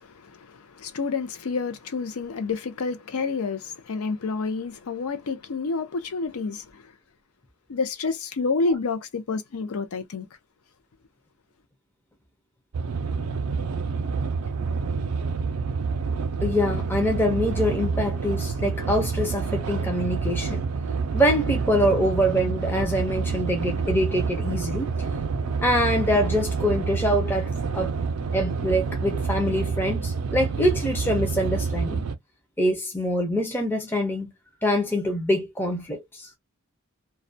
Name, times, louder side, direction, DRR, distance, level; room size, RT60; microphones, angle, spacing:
voice 1, 0.0-6.9 7.7-10.3, left 4 dB, 75° left, 0.5 m, -29 dB
sound 1, 12.7-32.2, right 5 dB, 85° right, 0.5 m, -28 dB
voice 2, 16.4-20.6 21.1-24.9 25.6-27.9 28.3-32.0 32.6-34.3 34.6-36.3, equal, 10° left, 0.5 m, -24 dB
2.3 x 2.1 x 2.5 m
head